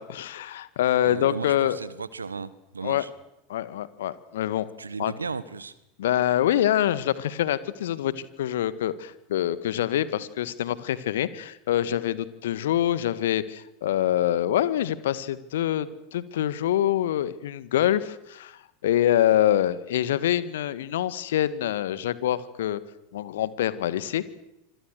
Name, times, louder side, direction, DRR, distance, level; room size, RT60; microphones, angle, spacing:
voice 1, 0.0-1.8 2.8-3.1 3.5-4.7 5.0-5.1 6.0-22.8 23.1-24.3, left 12 dB, 65° left, 16 dB, 1.8 m, -25 dB
voice 2, 1.0-3.1 4.8-5.8, right 4 dB, 80° right, 17 dB, 1.4 m, -35 dB
26.5 x 26.0 x 6.6 m, 0.86 s
figure-of-eight pair, 85°, 0 cm